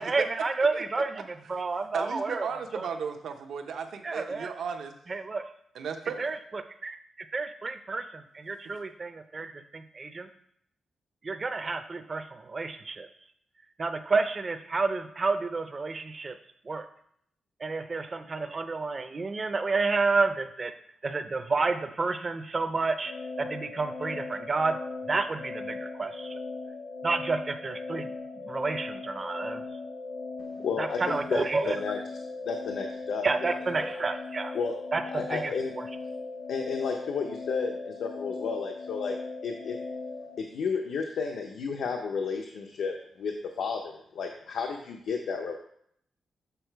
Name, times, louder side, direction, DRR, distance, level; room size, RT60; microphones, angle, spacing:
voice 1, 0.0-2.5 2.7-2.9 4.0-4.5 5.1-5.5 6.2-7.0 7.3-10.3 11.2-13.1 13.8-16.4 16.7-16.9 17.6-20.7 21.0-23.1 23.4-24.8 25.1-26.4 27.0-29.6 30.6-31.8 33.2-34.5 34.9-35.9, right 3 dB, 30° right, 9 dB, 0.4 m, -30 dB
voice 2, 1.9-4.9 5.7-6.4 8.6-8.8, right 6 dB, 80° right, 6 dB, 0.7 m, -35 dB
sound 1, 23.1-40.4, left 3 dB, 35° left, 0.5 m, -38 dB
voice 3, 30.4-32.0 32.5-33.9 34.5-34.8 35.1-35.7 36.5-39.2 39.4-39.8 40.4-45.5, left 5 dB, 85° left, 3 dB, 0.6 m, -32 dB
6.9 x 4.0 x 4.5 m, 0.68 s
wide cardioid pair, 155°, 0 cm